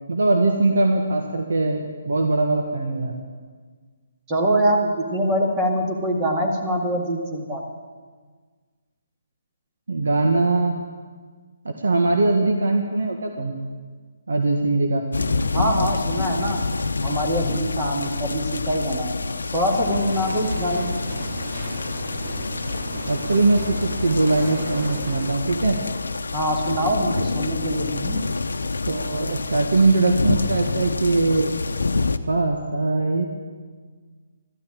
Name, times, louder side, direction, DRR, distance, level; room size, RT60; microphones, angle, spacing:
voice 1, 0.1-3.1 9.9-10.7 11.6-13.5 14.3-15.0 23.1-25.8 28.9-31.5 32.3-33.3, right 2 dB, 80° right, 3 dB, 1.6 m, -21 dB
voice 2, 4.3-7.6 15.5-16.6 17.0-19.1 19.5-21.0 26.3-28.2, equal, 20° right, 0 dB, 2.0 m, -24 dB
sound 1, 15.1-32.2, left 3 dB, 85° left, 0.7 m, -27 dB
sound 2, 19.7-25.3, right 2 dB, 55° right, 2.8 m, -35 dB
13.5 x 10.0 x 8.8 m, 1.5 s
hypercardioid pair, 155°, 0 cm